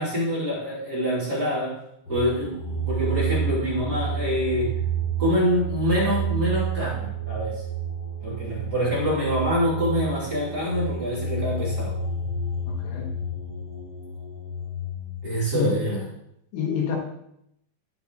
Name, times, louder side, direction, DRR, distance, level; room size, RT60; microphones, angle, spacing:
voice 1, 0.0-1.8 2.1-4.8 5.2-7.6 8.2-11.9 15.2-16.0, equal, 25° right, -8 dB, 3.2 m, -26 dB
sound 1, 2.1-15.5, right 4 dB, 40° left, 1.6 m, -30 dB
voice 2, 12.7-13.1 15.5-15.8 16.5-17.0, left 7 dB, 80° left, 0 dB, 4.0 m, -27 dB
12.0 x 8.7 x 3.1 m, 0.77 s
omnidirectional pair, 5.1 m